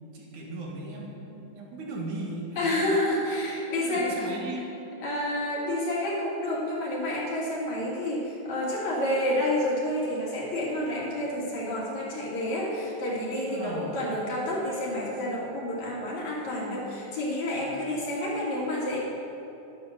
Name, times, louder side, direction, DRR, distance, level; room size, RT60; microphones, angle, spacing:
voice 1, 0.1-3.0 3.7-4.7 13.5-13.9 17.6-17.7, right 2 dB, 65° right, -2 dB, 3.3 m, -37 dB
voice 2, 2.6-4.3 5.0-19.0, left 1 dB, 60° left, -4 dB, 3.7 m, -29 dB
12.0 x 10.0 x 6.6 m, 2.9 s
omnidirectional pair, 3.8 m